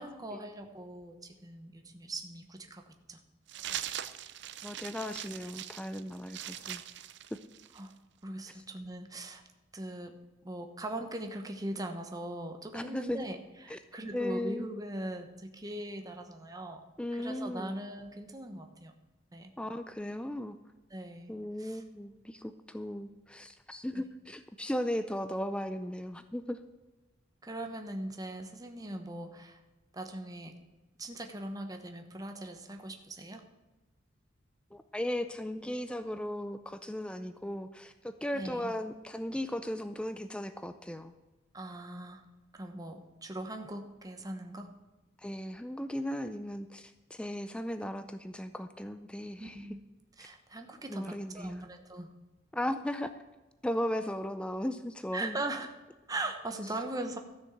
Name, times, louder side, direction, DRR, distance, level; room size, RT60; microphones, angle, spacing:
voice 1, 0.0-3.2 7.7-7.9 8.2-9.4 9.7-10.2 10.4-13.4 13.6-16.8 17.1-18.9 19.3-19.5 20.9-21.3 21.6-21.8 23.9-24.0 27.4-29.6 29.9-30.5 31.0-33.4 38.3-38.7 41.5-42.2 42.5-44.7 49.4-49.8 50.2-52.1 55.1-55.7 56.1-57.2, right 1 dB, 20° right, 5 dB, 1.1 m, -40 dB
sound 1, 3.5-7.9, right 11 dB, 65° right, 0.6 m, -41 dB
voice 2, 4.6-6.8 7.3-7.4 12.7-13.3 13.7-13.8 14.1-14.7 17.0-17.8 19.6-20.6 21.3-26.6 34.7-41.1 45.2-49.7 50.9-51.6 52.5-53.1 53.6-55.4, left 1 dB, 5° left, 10 dB, 0.4 m, -36 dB
13.5 x 6.3 x 7.9 m, 1.1 s
head